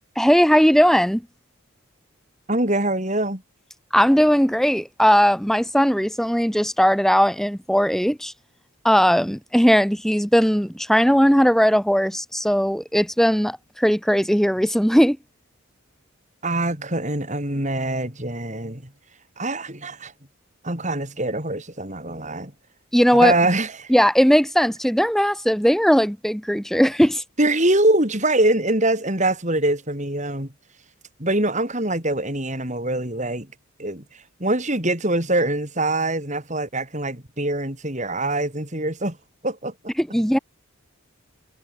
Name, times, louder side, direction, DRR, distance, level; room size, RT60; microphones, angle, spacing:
voice 1, 0.2-1.2 3.9-8.3 8.8-15.2 22.9-23.3 23.9-27.2 40.0-40.4, equal, ahead, 2.1 m, -18 dB
voice 2, 2.5-3.4 16.4-18.8 19.4-20.1 20.6-22.5 23.1-23.9 27.4-30.5 31.2-33.5 33.8-39.2 39.4-39.7, right 1 dB, 30° right, 4.9 m, -23 dB
head